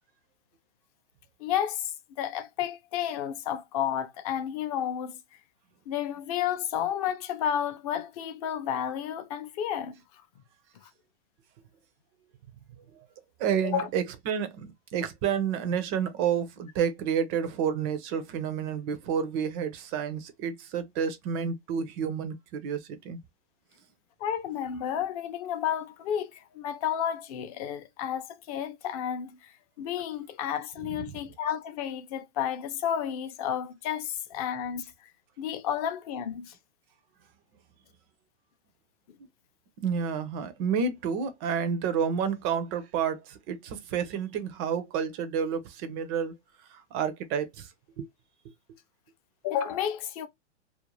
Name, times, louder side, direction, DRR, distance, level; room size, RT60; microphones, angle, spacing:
voice 1, 1.4-5.2 5.9-10.2 10.8-10.9 13.6-13.9 24.2-34.9 35.4-36.6 49.4-50.3, left 9 dB, 35° left, 0.5 m, -31 dB
voice 2, 13.4-23.2 39.8-46.3 46.7-47.7 48.0-48.1, right 7 dB, 25° right, 0.4 m, -30 dB
2.5 x 2.1 x 3.0 m
hypercardioid pair, 135°, 35 cm